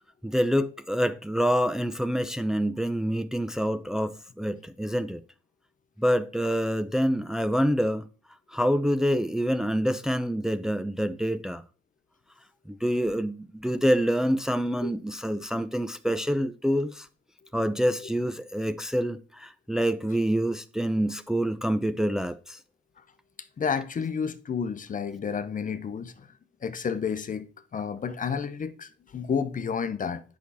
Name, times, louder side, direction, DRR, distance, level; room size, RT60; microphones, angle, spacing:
voice 1, 0.2-5.2 6.0-8.1 8.5-11.6 12.7-17.1 17.5-22.6, equal, 5° right, 0.6 m, -26 dB
voice 2, 23.6-26.3 26.6-30.2, left 6 dB, 40° left, 0.9 m, -31 dB
8.2 x 6.3 x 4.2 m
cardioid pair, 90°, 20 cm